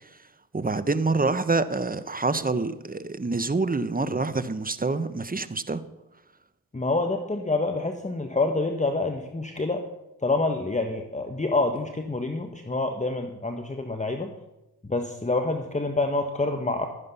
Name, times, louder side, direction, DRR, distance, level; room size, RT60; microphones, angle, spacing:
voice 1, 0.5-5.8, right 3 dB, 20° right, 14 dB, 1.0 m, -26 dB
voice 2, 6.7-9.8 10.2-14.3 14.8-16.9, left 2 dB, 20° left, 5 dB, 1.4 m, -27 dB
13.0 x 9.8 x 5.7 m, 0.95 s
supercardioid pair, 45°, 38 cm